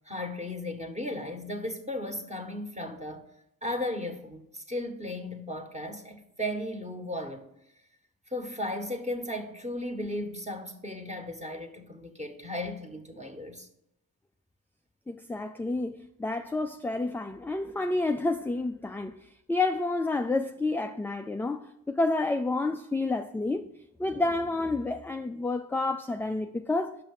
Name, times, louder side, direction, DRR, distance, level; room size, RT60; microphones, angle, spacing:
voice 1, 0.0-3.3 3.6-7.5 8.3-13.7, left 1 dB, 15° right, 1.5 m, -35 dB
voice 2, 15.1-23.7 24.0-27.0, left 2 dB, 5° left, 0.3 m, -29 dB
6.0 x 5.6 x 5.5 m
supercardioid pair, 50°, 40 cm